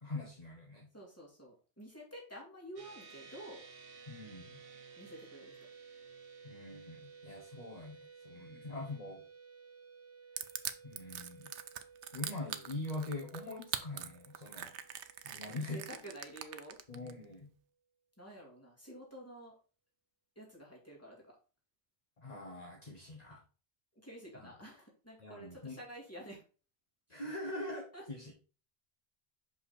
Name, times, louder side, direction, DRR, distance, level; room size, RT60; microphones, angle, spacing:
voice 1, 0.0-0.9 4.1-4.6 6.4-9.2 10.3-10.5 10.8-11.5 12.1-14.7 15.2-15.8 16.9-17.5 22.2-23.4 24.3-24.5 25.2-25.8 27.1-28.3, left 2 dB, 40° left, 0 dB, 1.3 m, -43 dB
voice 2, 0.9-3.6 5.0-5.6 8.3-8.8 15.4-16.8 18.2-19.5 20.4-21.4 24.0-26.4 27.9-28.0, right 1 dB, 15° left, -3 dB, 2.4 m, -50 dB
sound 1, 2.8-16.4, right 5 dB, 60° right, 1.2 m, -56 dB
Crushing, 10.4-17.1, right 9 dB, 85° right, 0.9 m, -42 dB
5.7 x 5.4 x 4.2 m, 0.36 s
omnidirectional pair, 1.1 m